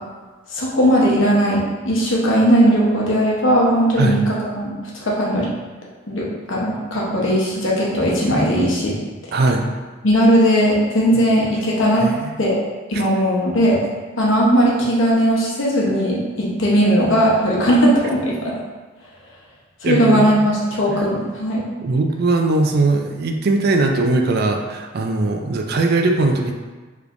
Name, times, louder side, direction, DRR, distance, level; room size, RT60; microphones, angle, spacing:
voice 1, 0.5-4.7 5.0-5.5 6.1-8.9 10.0-12.1 12.4-12.6 12.9-13.8 14.2-18.5 19.8-21.6, equal, 80° left, -4 dB, 1.0 m, -18 dB
voice 2, 9.3-9.6 12.0-12.4 12.9-13.0 19.8-20.4 21.8-26.5, right 2 dB, 55° right, 4 dB, 0.4 m, -19 dB
4.9 x 3.2 x 2.6 m, 1.3 s
head